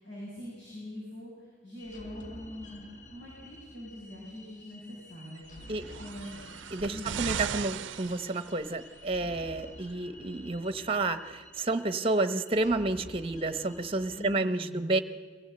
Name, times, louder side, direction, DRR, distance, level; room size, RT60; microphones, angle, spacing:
voice 1, 0.0-6.4 6.9-7.2 14.2-14.9, left 1 dB, 70° left, -6 dB, 7.1 m, -43 dB
sound 1, 1.8-14.4, equal, 45° left, 1.5 m, -51 dB
sound 2, 5.6-9.0 9.9-10.0, right 8 dB, 80° right, 0.5 m, -38 dB
voice 2, 6.7-15.0, right 2 dB, 30° right, 11 dB, 0.9 m, -30 dB
23.0 x 15.5 x 7.9 m, 1.5 s
head